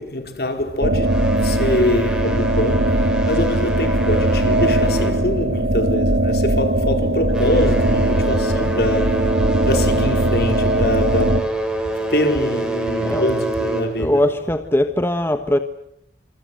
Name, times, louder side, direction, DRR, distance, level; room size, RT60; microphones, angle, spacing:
voice 1, 0.0-9.3 9.6-11.5 12.1-14.2, left 1 dB, 60° left, 4.6 m, -24 dB
sound 1, 0.8-11.4, right 1 dB, 90° right, 2.4 m, -19 dB
sound 2, 1.0-5.9 6.2-6.5 7.1-14.2, right 1 dB, 5° right, 5.5 m, -27 dB
voice 2, 14.0-15.6, left 1 dB, 15° left, 1.3 m, -20 dB
26.5 x 25.5 x 7.8 m
head